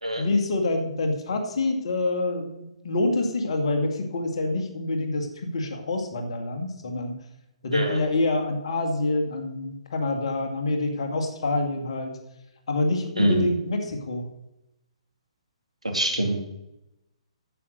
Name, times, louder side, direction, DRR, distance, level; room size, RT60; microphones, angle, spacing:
voice 1, 0.2-7.2 7.6-12.1 12.7-14.3, left 2 dB, 60° left, 4 dB, 2.1 m, -26 dB
voice 2, 15.9-16.4, right 1 dB, 85° right, 4 dB, 2.5 m, -24 dB
9.1 x 8.0 x 6.5 m, 0.90 s
figure-of-eight pair, 125°, 3 cm